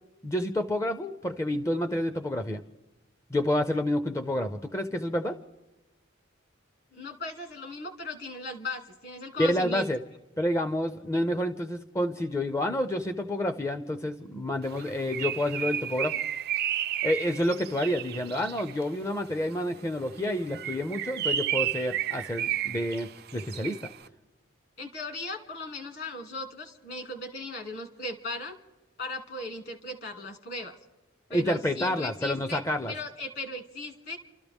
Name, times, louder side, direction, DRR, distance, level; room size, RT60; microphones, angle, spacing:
voice 1, 0.2-2.6 3.3-5.4 9.4-10.0 10.4-16.2 17.0-23.9 31.3-32.9, left 1 dB, 15° left, 8 dB, 0.6 m, -29 dB
voice 2, 6.9-9.9 24.8-28.6 29.0-30.7 31.3-32.6 32.9-34.2, left 2 dB, 55° left, 5 dB, 2.4 m, -37 dB
Bird, 14.7-18.8 20.4-24.0, right 10 dB, 55° right, 0.5 m, -32 dB
29.5 x 13.0 x 3.5 m, 1.1 s
head